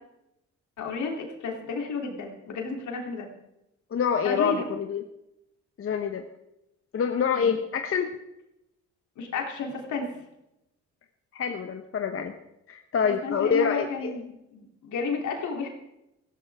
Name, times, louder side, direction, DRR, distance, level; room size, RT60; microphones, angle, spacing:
voice 1, 0.8-3.3 4.2-4.6 7.3-7.5 9.2-10.1 13.0-14.2 14.5-15.7, left 4 dB, 75° left, 1 dB, 3.3 m, -32 dB
voice 2, 3.9-5.0 5.8-6.3 6.9-8.1 11.3-12.3 12.7-14.2, left 6 dB, 45° left, 6 dB, 1.1 m, -26 dB
15.5 x 15.0 x 3.7 m, 0.87 s
cardioid pair, 90°, 30 cm